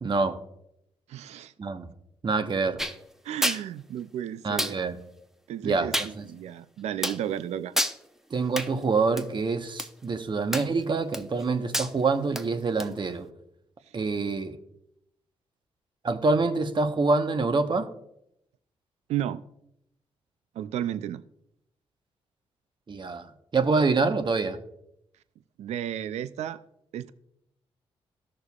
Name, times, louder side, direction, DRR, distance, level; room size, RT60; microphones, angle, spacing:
voice 1, 0.0-0.4 1.6-1.9 2.2-2.8 4.4-5.0 5.6-5.9 6.2-6.3 8.3-13.3 13.9-14.6 16.0-17.9 22.9-24.6, right 3 dB, 45° right, 1.0 m, -26 dB
voice 2, 1.1-1.5 3.2-4.8 5.5-7.7 19.1-19.4 20.6-21.2 25.6-26.6 26.9-27.1, right 11 dB, 75° right, 0.4 m, -33 dB
sound 1, 2.8-3.0 3.4-3.6 4.6-4.8 5.9-6.1 7.0-7.2 7.8-8.0 8.6-8.7 9.2-9.3 9.8-9.9 10.5-10.8 11.1-11.4 11.7-11.9 12.4-12.5 12.8-12.9, equal, 5° right, 0.7 m, -28 dB
14.0 x 6.4 x 2.4 m
supercardioid pair, 60°, 11 cm